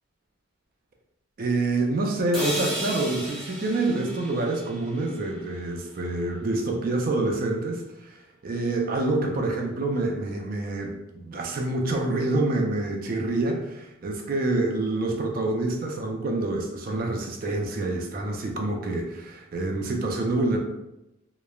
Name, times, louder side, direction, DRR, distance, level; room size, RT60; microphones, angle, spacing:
voice 1, 1.4-20.6, right 2 dB, 45° right, 1 dB, 0.4 m, -27 dB
sound 1, 2.3-6.4, equal, ahead, 0.6 m, -35 dB
3.0 x 2.0 x 2.3 m, 0.92 s
head